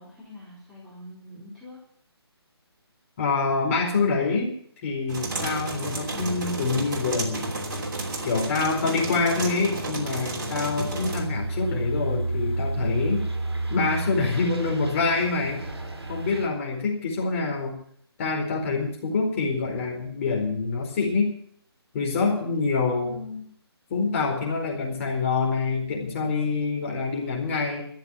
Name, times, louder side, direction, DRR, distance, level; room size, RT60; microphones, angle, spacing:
voice 1, 0.0-1.8 23.0-23.6, left 2 dB, 5° right, -10 dB, 4.1 m, -43 dB
voice 2, 3.2-4.5 4.8-7.5 8.2-13.3 13.7-15.6 16.1-17.8 18.2-21.3 21.9-23.2 23.9-27.8, left 4 dB, 30° left, 0 dB, 4.5 m, -26 dB
sound 1, 5.1-11.2, right 2 dB, 45° right, 3.1 m, -32 dB
sound 2, 10.6-16.5, right 2 dB, 70° right, 5.8 m, -31 dB
13.5 x 8.1 x 9.7 m, 0.62 s
figure-of-eight pair, 150°, 14 cm